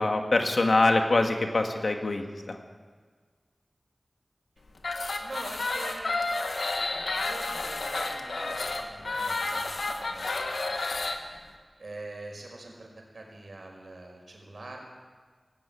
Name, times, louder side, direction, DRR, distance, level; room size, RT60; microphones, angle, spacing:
voice 1, 0.0-2.6, left 2 dB, 65° left, 4 dB, 2.1 m, -24 dB
sound 1, 4.8-11.2, left 3 dB, 85° left, 1.8 m, -31 dB
voice 2, 5.2-6.2 6.9-10.6 11.2-11.4 11.8-12.9 13.1-14.8, right 2 dB, 70° right, 1 dB, 5.2 m, -44 dB
17.5 x 17.0 x 8.7 m, 1.5 s
wide cardioid pair, 80°, 0 cm